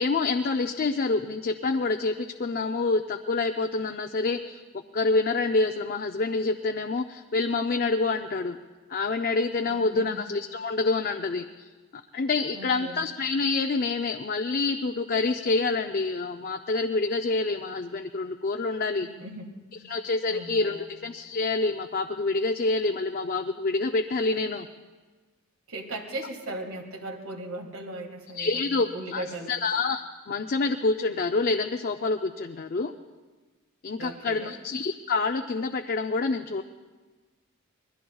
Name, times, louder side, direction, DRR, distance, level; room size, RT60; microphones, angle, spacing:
voice 1, 0.0-4.6 4.9-8.6 8.9-11.7 12.1-19.1 19.9-24.7 28.3-32.9 33.8-36.6, left 3 dB, 40° left, 5 dB, 0.4 m, -27 dB
voice 2, 9.7-10.2 12.5-13.1 19.0-19.6 19.8-19.9 20.3-20.9 25.7-29.6 34.0-34.6, right 2 dB, 75° right, 4 dB, 1.9 m, -38 dB
26.0 x 21.0 x 2.3 m, 1.3 s
head